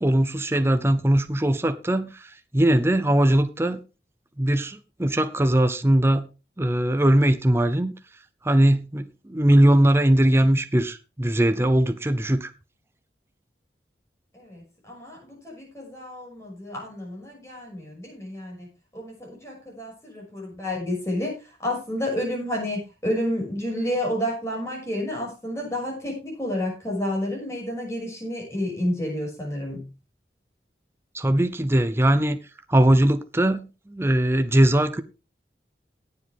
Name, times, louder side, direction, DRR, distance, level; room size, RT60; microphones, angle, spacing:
voice 1, 0.0-3.8 4.4-6.3 6.6-7.9 8.4-12.5 31.1-32.4 32.7-35.0, right 1 dB, 15° right, 0.6 m, -20 dB
voice 2, 14.3-18.7 18.9-21.3 21.6-29.8, left 1 dB, 15° left, 6.1 m, -30 dB
17.5 x 7.6 x 3.5 m
head